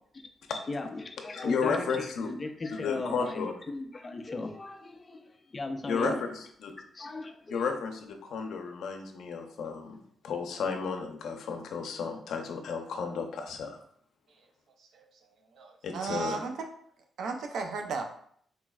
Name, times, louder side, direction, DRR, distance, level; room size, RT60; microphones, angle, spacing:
voice 1, 0.5-6.4 6.9-7.8, left 3 dB, 25° left, 6 dB, 0.4 m, -38 dB
voice 2, 1.3-2.3 2.7-3.5 5.9-6.7 7.5-13.8 15.8-16.4, left 5 dB, 80° left, 4 dB, 0.5 m, -33 dB
voice 3, 15.5-16.5 17.2-18.0, right 4 dB, 75° right, 4 dB, 0.5 m, -34 dB
4.0 x 3.0 x 2.3 m, 0.62 s
cardioid pair, 140°, 0 cm